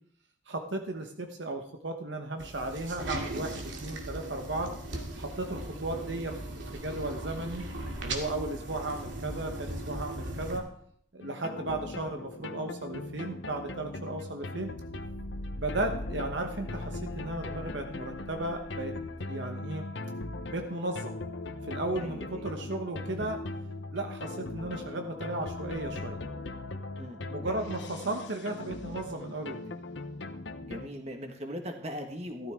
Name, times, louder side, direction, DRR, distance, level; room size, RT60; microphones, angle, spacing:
voice 1, 0.5-4.7 5.2-7.7 8.0-10.7 11.1-14.7 15.6-19.8 20.5-21.2 21.7-23.4 23.9-26.2 27.3-29.8, right 2 dB, 70° right, 4 dB, 1.1 m, -35 dB
sound 1, 2.4-10.6, right 1 dB, 90° right, 2.2 m, -38 dB
sound 2, 11.2-30.9, left 2 dB, 75° left, 0.9 m, -39 dB
voice 2, 22.0-22.5 27.0-27.7 30.6-32.5, equal, 35° right, 4 dB, 1.7 m, -40 dB
14.5 x 13.0 x 3.7 m, 0.65 s
head